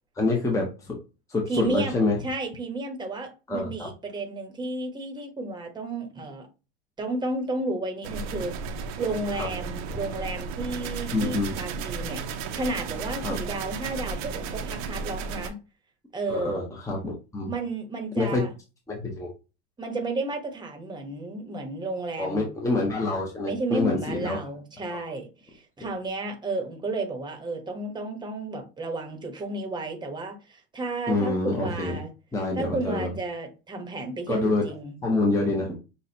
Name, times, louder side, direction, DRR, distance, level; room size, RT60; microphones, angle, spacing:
voice 1, 0.2-1.0 1.3-2.2 3.5-3.9 9.4-9.5 11.1-11.6 13.2-13.4 16.3-17.5 18.2-18.4 18.9-19.3 22.2-24.4 24.9-25.0 31.1-32.0 32.3-33.1 34.3-34.7 35.0-35.8, left 2 dB, 10° left, 0.9 m, -26 dB
voice 2, 1.5-6.5 7.0-12.2 12.5-15.6 16.1-16.7 17.5-18.5 19.8-22.5 23.4-32.1 32.5-35.0, right 2 dB, 15° right, 1.1 m, -32 dB
sound 1, 8.0-15.5, right 5 dB, 55° right, 0.9 m, -34 dB
6.3 x 2.4 x 2.8 m
supercardioid pair, 130°, 34 cm